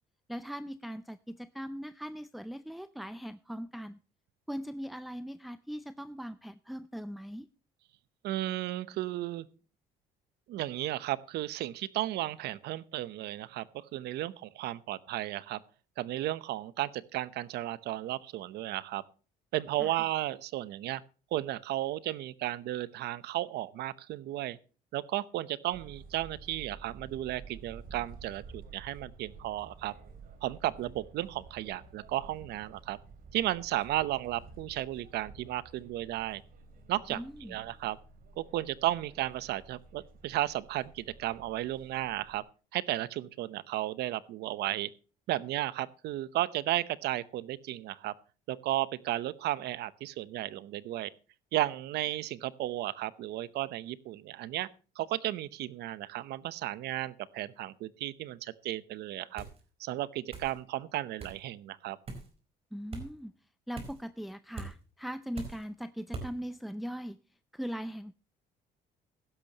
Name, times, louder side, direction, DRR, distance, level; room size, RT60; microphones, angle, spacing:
voice 1, 0.3-4.0 4.5-7.5 19.8-20.0 37.1-37.6 62.7-63.3 63.7-67.2 67.5-68.1, equal, ahead, 14 dB, 0.5 m, -40 dB
voice 2, 8.2-9.5 10.5-15.6 16.0-19.0 19.5-21.0 21.3-24.6 24.9-29.9 30.4-33.0 33.3-36.4 36.9-37.2 37.5-38.0 38.4-42.4 42.7-44.9 45.3-48.1 48.5-51.1 51.5-54.7 55.0-59.5 59.8-62.0, right 15 dB, 75° right, 18 dB, 0.9 m, -34 dB
sound 1, 25.7-42.4, right 4 dB, 60° right, 2.8 m, -52 dB
sound 2, 59.4-59.6 60.3-60.5 61.2-61.4 62.1-62.3 62.9-63.1 63.7-64.0 64.5-64.7 65.3-65.6 66.1-66.3, right 3 dB, 35° right, 4.4 m, -41 dB
16.0 x 12.0 x 2.9 m, 0.35 s
cardioid pair, 110°, 17 cm